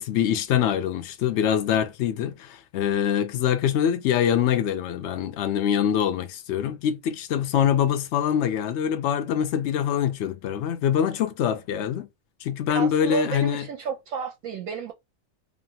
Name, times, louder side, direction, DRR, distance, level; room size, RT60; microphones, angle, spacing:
voice 1, 0.0-12.1 12.4-13.7, left 9 dB, 65° left, 0.7 m, -24 dB
voice 2, 12.7-14.9, right 6 dB, 70° right, 0.9 m, -32 dB
2.9 x 2.5 x 2.7 m
omnidirectional pair, 1.6 m